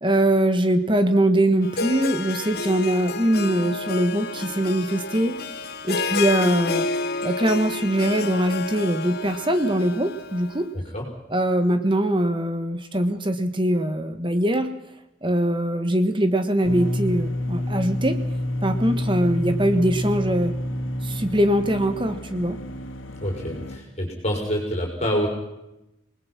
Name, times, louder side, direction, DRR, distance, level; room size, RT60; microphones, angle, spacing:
voice 1, 0.0-6.9 7.2-10.7 11.3-14.7 15.2-18.2 18.6-20.5 21.0-22.6, right 1 dB, 25° right, 8 dB, 1.5 m, -22 dB
Harp, 1.6-10.6, left 4 dB, 50° left, 1.6 m, -30 dB
sound 1, 16.6-23.8, left 1 dB, 80° left, 2.8 m, -29 dB
voice 2, 23.2-25.3, equal, 35° left, 0 dB, 5.2 m, -26 dB
28.0 x 20.0 x 6.0 m, 0.90 s
head